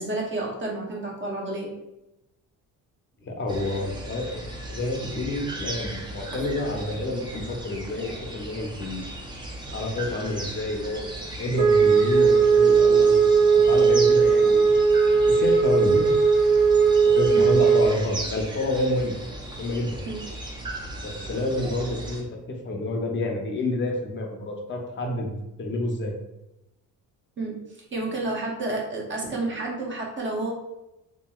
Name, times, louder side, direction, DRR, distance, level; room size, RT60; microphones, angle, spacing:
voice 1, 0.0-1.7 17.3-17.6 20.1-20.2 27.4-30.5, right 2 dB, 35° right, -2 dB, 0.8 m, -30 dB
voice 2, 3.2-4.4 4.7-9.0 9.7-11.1 11.4-13.2 13.5-14.7 15.3-16.1 17.1-19.2 19.5-20.0 21.0-22.3 22.6-26.1, left 1 dB, 35° left, 1 dB, 0.6 m, -28 dB
sound 1, 3.5-22.2, right 1 dB, 15° right, 0.4 m, -37 dB
Wind instrument woodwind instrument, 11.6-18.0, right 5 dB, 80° right, 0.6 m, -18 dB
2.8 x 2.7 x 2.3 m, 0.93 s
cardioid pair, 110°, 34 cm